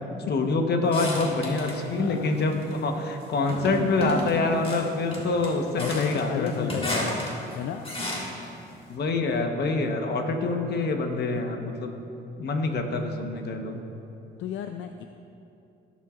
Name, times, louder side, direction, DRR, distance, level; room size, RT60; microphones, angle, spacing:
voice 1, 0.3-7.1 8.9-11.9 12.4-13.8, left 3 dB, 55° left, 4 dB, 1.2 m, -26 dB
sound 1, 0.9-1.8 2.2-2.8 3.5-8.5, left 1 dB, 30° left, 1.9 m, -33 dB
voice 2, 2.0-2.4 5.8-7.2 7.5-7.9 14.4-15.0, left 9 dB, 75° left, 6 dB, 0.4 m, -32 dB
16.5 x 7.4 x 2.5 m, 2.7 s
cardioid pair, 90°, 20 cm